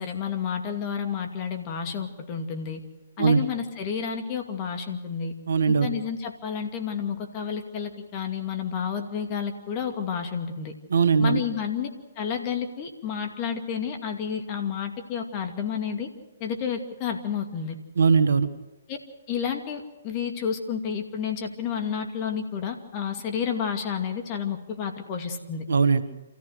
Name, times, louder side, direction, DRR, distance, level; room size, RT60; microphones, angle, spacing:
voice 1, 0.0-2.8 3.2-5.3 5.7-10.7 11.2-11.9 12.2-16.1 16.4-17.8 18.9-19.0 19.3-25.6, left 7 dB, 35° left, 5 dB, 2.4 m, -30 dB
voice 2, 5.5-5.9 10.9-11.4 17.9-18.5 25.7-26.0, right 5 dB, 70° right, 10 dB, 1.6 m, -20 dB
27.0 x 14.5 x 6.5 m, 1.2 s
hypercardioid pair, 135°, 0 cm